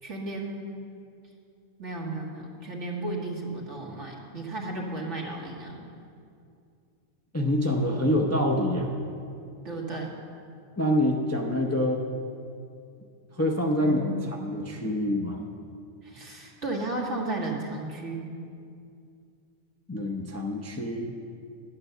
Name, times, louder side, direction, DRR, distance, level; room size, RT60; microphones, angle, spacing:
voice 1, 0.0-0.6 1.8-5.9 9.6-10.1 13.8-14.2 16.0-18.3, right 2 dB, 60° right, -1 dB, 1.9 m, -34 dB
voice 2, 7.3-8.9 10.8-12.1 13.4-14.1 14.4-15.4 19.9-21.1, left 1 dB, 15° left, 1 dB, 0.5 m, -26 dB
10.5 x 8.6 x 6.7 m, 2.4 s
omnidirectional pair, 1.4 m